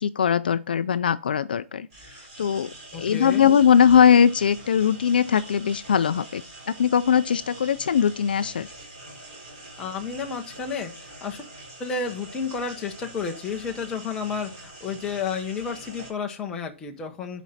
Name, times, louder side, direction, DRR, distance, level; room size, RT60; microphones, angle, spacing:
voice 1, 0.0-1.9 2.4-8.7, left 8 dB, 45° left, 0.4 m, -20 dB
sound 1, 1.9-16.1, right 2 dB, 25° right, 3.5 m, -44 dB
voice 2, 2.9-3.5 9.8-11.4 11.8-17.4, left 5 dB, 5° left, 0.7 m, -31 dB
9.0 x 5.1 x 4.1 m
hypercardioid pair, 180°, 7 cm